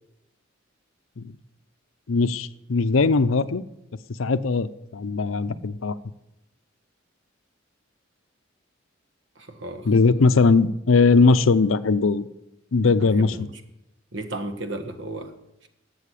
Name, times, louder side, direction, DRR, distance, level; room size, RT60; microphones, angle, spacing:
voice 1, 2.1-3.6 4.2-6.0 9.8-12.3 12.7-13.4, left 4 dB, 85° left, 14 dB, 0.6 m, -20 dB
voice 2, 9.4-9.9 13.0-13.5 14.1-15.3, right 1 dB, 65° right, 8 dB, 1.4 m, -34 dB
12.5 x 7.9 x 8.4 m, 0.90 s
head